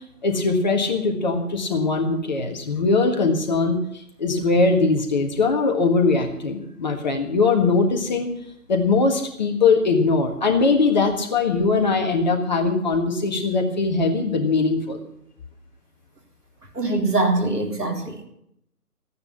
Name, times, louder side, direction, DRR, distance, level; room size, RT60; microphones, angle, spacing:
voice 1, 0.2-3.8 4.2-8.3 8.7-15.0, left 4 dB, 30° left, 3 dB, 1.6 m, -21 dB
voice 2, 16.8-18.2, right 2 dB, 80° right, 3 dB, 3.4 m, -23 dB
14.5 x 9.5 x 7.1 m, 0.74 s
figure-of-eight pair, 150°, 46 cm